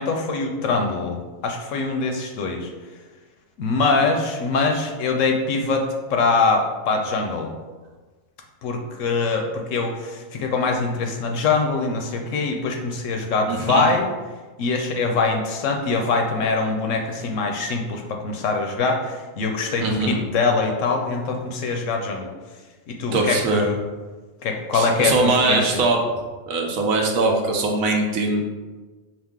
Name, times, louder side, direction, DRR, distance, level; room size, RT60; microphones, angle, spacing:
voice 1, 0.0-2.7 3.6-7.5 8.6-14.1 14.6-22.3 22.9-23.8 24.4-25.6, left 3 dB, 70° left, 3 dB, 0.8 m, -23 dB
voice 2, 13.5-13.8 19.8-20.2 23.1-23.6 24.7-26.0 26.5-28.4, right 3 dB, 70° right, 2 dB, 1.1 m, -21 dB
5.7 x 2.4 x 3.6 m, 1.3 s
omnidirectional pair, 1.5 m